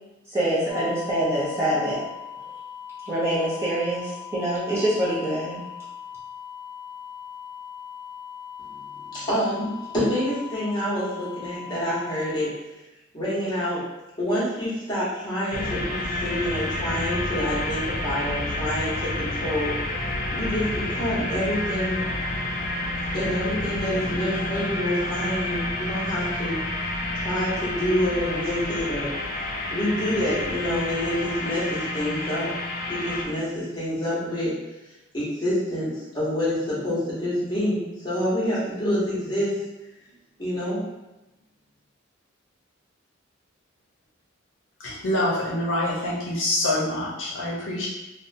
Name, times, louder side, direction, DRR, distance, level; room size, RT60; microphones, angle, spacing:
voice 1, 0.3-2.0 3.1-5.6, right 1 dB, 10° right, -9 dB, 0.6 m, -25 dB
sound 1, 0.7-12.4, left 8 dB, 85° right, 0.7 m, -40 dB
voice 2, 9.1-12.5 13.1-13.8 14.2-18.9 19.2-19.7 20.3-22.1 23.1-26.6 27.1-29.1 29.7-32.5 32.9-34.5 35.1-39.5 40.4-40.8, equal, 20° left, -10 dB, 1.0 m, -27 dB
sound 2, 15.5-33.3, left 1 dB, 40° left, 0.3 m, -29 dB
voice 3, 44.8-47.9, left 1 dB, 65° left, -5 dB, 0.7 m, -26 dB
2.8 x 2.1 x 2.6 m, 0.99 s
head